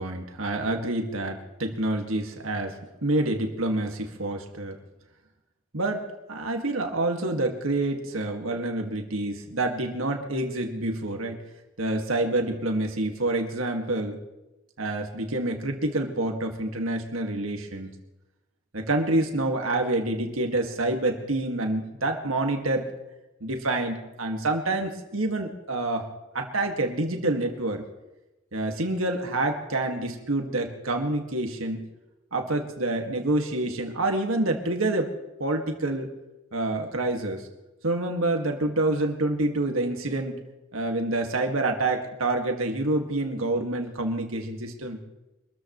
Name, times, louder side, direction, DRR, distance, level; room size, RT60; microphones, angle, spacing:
voice 1, 0.0-2.8 3.0-4.8 5.7-11.4 11.8-14.2 14.8-17.9 18.7-22.9 23.4-26.1 26.3-27.8 28.5-31.9 32.3-35.1 35.4-36.1 36.5-37.4 37.8-40.4 40.7-45.0, right 2 dB, 80° right, 3 dB, 2.0 m, -27 dB
25.0 x 14.0 x 3.2 m, 1.0 s
head